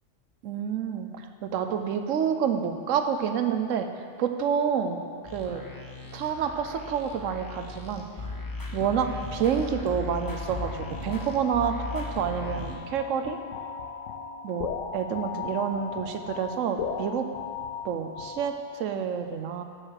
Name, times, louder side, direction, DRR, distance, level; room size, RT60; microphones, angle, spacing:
voice 1, 0.4-3.9 4.2-5.0 5.3-5.6 6.1-8.0 8.7-13.4 14.4-17.2 17.8-19.6, right 7 dB, 85° right, 7 dB, 1.0 m, -28 dB
sound 1, 5.2-12.8, left 2 dB, 20° left, 1.0 m, -37 dB
sound 2, 10.3-19.0, left 6 dB, 85° left, 1.0 m, -37 dB
7.5 x 6.5 x 6.5 m, 2.1 s
omnidirectional pair, 1.3 m